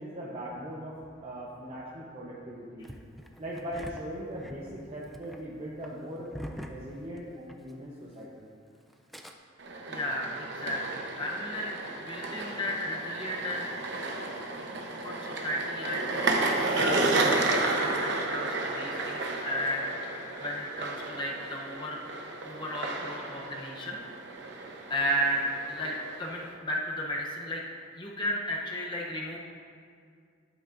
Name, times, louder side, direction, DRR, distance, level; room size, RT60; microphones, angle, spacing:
voice 1, 0.0-2.9 3.4-6.3 6.7-8.5, equal, 30° right, -5 dB, 0.9 m, -40 dB
Engine starting, 2.8-7.7 8.0-8.1 8.9-9.3, equal, ahead, 0.4 m, -44 dB
sound 1, 9.6-26.5, right 2 dB, 60° right, 0.9 m, -32 dB
voice 2, 9.9-11.7 12.0-13.7 15.0-22.0 22.4-24.0 24.9-27.6 28.0-29.4, equal, 25° left, -2 dB, 0.8 m, -34 dB
12.0 x 8.2 x 2.6 m, 2.3 s
head